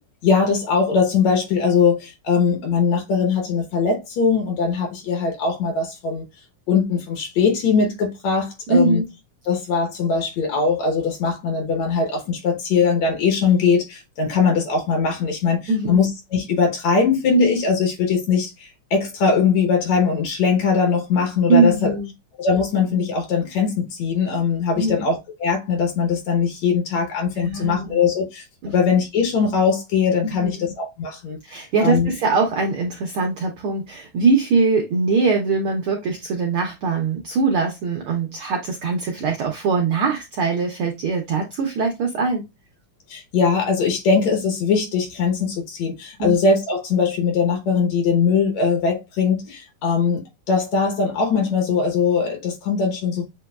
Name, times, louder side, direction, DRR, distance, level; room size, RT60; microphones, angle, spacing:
voice 1, 0.2-6.2 6.7-9.0 9.5-15.6 15.9-21.9 22.4-32.1 43.1-50.2 50.5-53.3, left 5 dB, 70° left, 2.2 m, -21 dB
voice 2, 8.7-9.0 15.7-16.0 21.5-22.1 24.7-25.0 27.4-28.1 28.6-28.7 30.2-30.7 31.4-42.5 46.2-46.3, right 4 dB, 85° right, 1.2 m, -22 dB
7.8 x 2.9 x 2.3 m
omnidirectional pair, 3.4 m